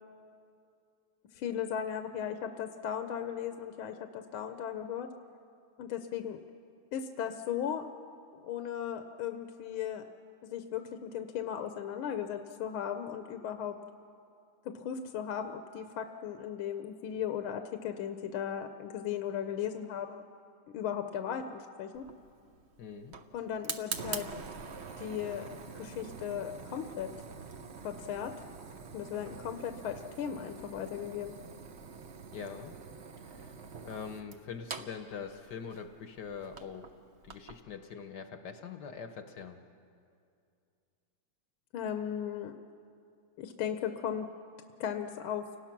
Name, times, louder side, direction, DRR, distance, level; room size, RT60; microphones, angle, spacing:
voice 1, 1.3-5.1 5.8-6.4 6.9-7.9 8.3-10.0 10.4-13.8 14.6-20.2 20.7-22.1 23.3-24.3 25.0-25.5 25.7-27.1 27.8-28.3 28.9-31.3 41.7-42.5 43.4-44.3 44.8-45.5, left 9 dB, 75° left, 7 dB, 1.6 m, -36 dB
Fire, 21.9-37.6, right 5 dB, 55° right, 0.7 m, -45 dB
voice 2, 22.8-23.2 32.3-32.7 33.3-33.6 33.8-36.8 37.2-39.6, left 6 dB, 60° left, 7 dB, 1.3 m, -43 dB
29.5 x 18.5 x 5.9 m, 2.4 s
omnidirectional pair, 2.4 m